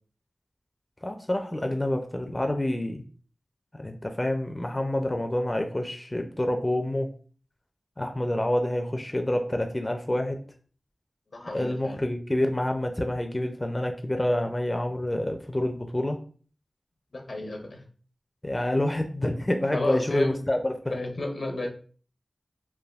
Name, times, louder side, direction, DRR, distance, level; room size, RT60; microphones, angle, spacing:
voice 1, 1.0-3.0 3.7-7.1 8.0-10.4 11.5-16.2 18.4-20.7, left 1 dB, 25° left, 4 dB, 0.4 m, -27 dB
voice 2, 11.3-12.0 17.1-17.8 19.7-20.4 20.9-21.7, left 2 dB, 75° left, 3 dB, 0.6 m, -32 dB
3.3 x 2.2 x 2.3 m, 0.42 s
cardioid pair, 45°, 0 cm